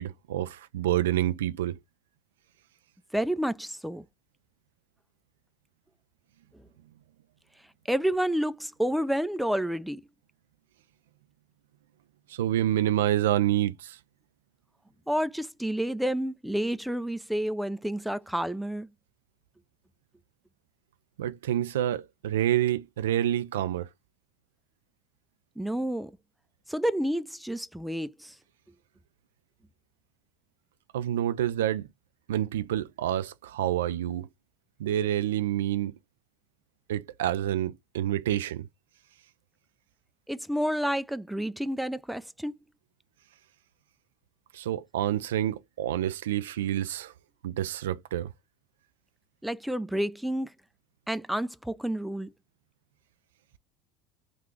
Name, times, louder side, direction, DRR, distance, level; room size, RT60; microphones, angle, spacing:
voice 1, 0.0-1.8 12.3-14.0 21.2-23.9 30.9-31.9 32.3-34.3 34.8-35.9 36.9-38.7 44.5-47.1 47.4-48.3, right 12 dB, 80° right, 0.3 m, -28 dB
voice 2, 3.1-4.0 7.9-10.0 15.1-18.9 25.6-26.1 26.7-28.3 40.3-42.6 49.4-50.5 51.1-52.3, equal, ahead, 0.4 m, -29 dB
3.6 x 2.4 x 3.1 m
hypercardioid pair, 80°, 0 cm